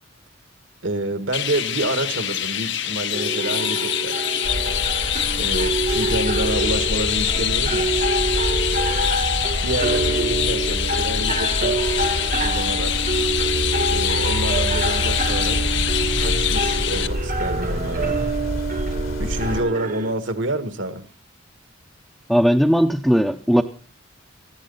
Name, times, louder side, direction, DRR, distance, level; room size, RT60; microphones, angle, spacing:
voice 1, 0.8-4.3 5.4-7.9 9.6-11.9 12.4-12.9 13.9-15.6 16.2-18.2 19.2-21.1, right 1 dB, 65° right, 1.8 m, -28 dB
Chirp tweet, 1.3-17.1, left 11 dB, 60° left, 0.9 m, -25 dB
sound 1, 3.1-20.1, right 3 dB, 40° right, 1.0 m, -27 dB
sound 2, 4.4-19.6, equal, 75° left, 2.1 m, -27 dB
voice 2, 22.3-23.6, equal, ahead, 0.7 m, -17 dB
19.5 x 15.0 x 4.1 m
head